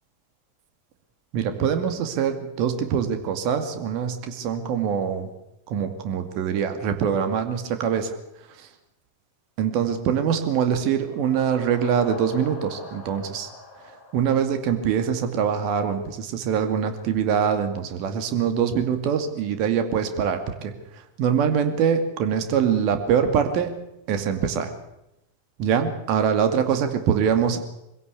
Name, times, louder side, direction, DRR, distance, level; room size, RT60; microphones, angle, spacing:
voice 1, 1.3-5.3 5.7-8.2 9.6-13.5 14.1-20.7 21.2-23.8 24.1-24.7 25.6-27.6, right 7 dB, 40° right, 7 dB, 2.3 m, -24 dB
sound 1, 10.8-15.4, left 2 dB, 35° left, 6.7 m, -44 dB
23.0 x 16.5 x 8.2 m, 0.88 s
figure-of-eight pair, 90°, 0 cm